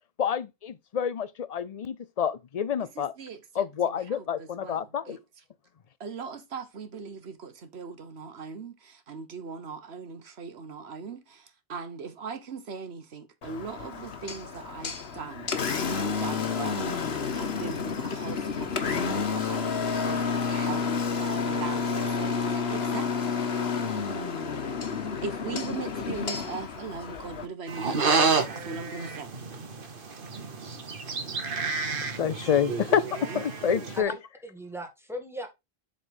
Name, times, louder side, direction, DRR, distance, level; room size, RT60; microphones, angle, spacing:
voice 1, 0.2-3.1 3.5-5.2 32.2-34.1, left 8 dB, 45° left, 0.6 m, -28 dB
voice 2, 2.9-3.6 4.1-5.2 6.0-15.5 15.9-16.9 17.3-23.3 25.2-29.3, right 5 dB, 90° right, 1.4 m, -39 dB
Engine, 13.4-27.5, left 6 dB, 80° left, 1.4 m, -30 dB
sound 1, 19.6-25.1, left 2 dB, 25° left, 1.0 m, -39 dB
sound 2, 27.7-34.0, right 4 dB, 60° right, 1.3 m, -29 dB
voice 3, 34.0-35.5, equal, ahead, 1.8 m, -38 dB
7.7 x 4.1 x 5.2 m
omnidirectional pair, 1.0 m